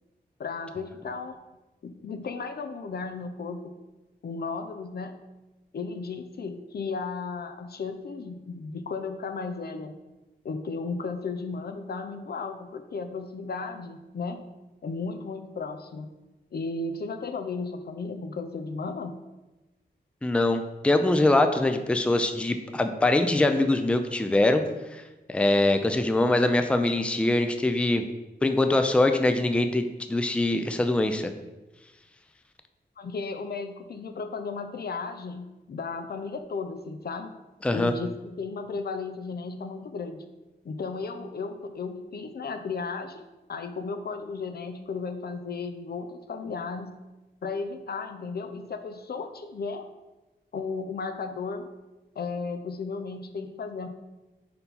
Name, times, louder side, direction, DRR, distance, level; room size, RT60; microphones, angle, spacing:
voice 1, 0.4-1.4 1.8-3.7 4.2-5.2 5.7-9.9 10.4-14.5 14.8-16.1 16.5-19.2 33.0-37.3 37.7-40.2 40.6-47.0 47.4-49.9 50.5-51.7 52.2-53.9, left 4 dB, 65° left, 8 dB, 0.5 m, -34 dB
voice 2, 20.2-24.6 24.9-25.0 25.3-28.1 28.4-31.3 37.6-37.9, left 2 dB, 5° left, 7 dB, 0.4 m, -23 dB
4.4 x 4.1 x 5.3 m, 1.1 s
wide cardioid pair, 95°, 18 cm